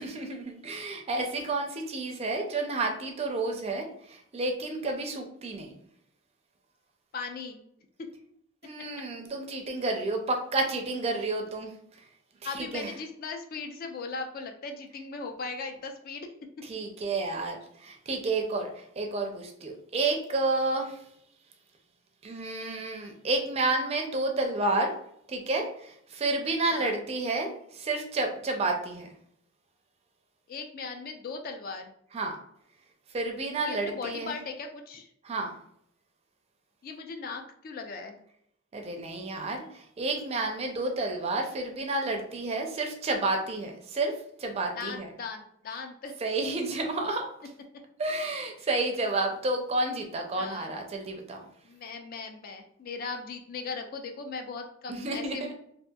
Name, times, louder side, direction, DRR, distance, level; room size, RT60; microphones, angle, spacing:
voice 1, 0.0-5.8 8.6-11.7 12.4-12.9 16.6-21.0 22.2-24.9 25.3-29.1 32.1-32.3 33.1-34.4 35.2-35.6 38.7-44.1 44.4-45.1 46.2-47.3 48.0-51.5 54.9-55.5, right 2 dB, 30° right, 3 dB, 0.4 m, -30 dB
voice 2, 7.1-7.7 8.0-8.1 12.4-16.3 26.7-27.0 30.5-31.9 33.6-35.1 36.8-38.2 44.7-46.1 50.3-50.7 51.6-55.5, left 4 dB, 50° left, 4 dB, 0.4 m, -38 dB
2.7 x 2.4 x 2.2 m, 0.69 s
head